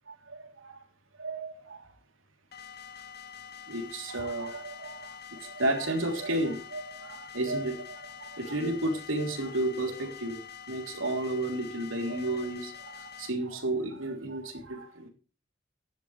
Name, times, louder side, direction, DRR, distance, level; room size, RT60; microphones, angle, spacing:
voice 1, 0.1-0.8 1.2-1.9 3.7-10.4 10.7-15.1, right 1 dB, 85° right, 4 dB, 3.3 m, -32 dB
sound 1, 2.5-13.3, left 7 dB, 50° left, 1.7 m, -46 dB
15.0 x 11.5 x 3.3 m, 0.36 s
head